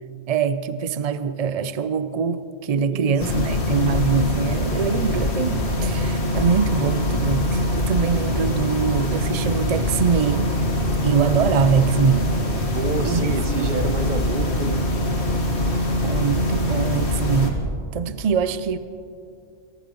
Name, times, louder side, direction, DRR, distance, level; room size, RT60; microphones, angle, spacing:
voice 1, 0.3-10.5 11.0-12.3 13.0-14.0 16.0-17.6 17.9-18.8, right 6 dB, 80° right, 12 dB, 0.3 m, -23 dB
voice 2, 2.9-3.2 12.7-14.8, right 4 dB, 45° right, 9 dB, 0.9 m, -28 dB
sound 1, 3.2-17.5, left 1 dB, 55° left, 1.9 m, -23 dB
23.5 x 18.0 x 3.1 m, 2.5 s
omnidirectional pair, 1.3 m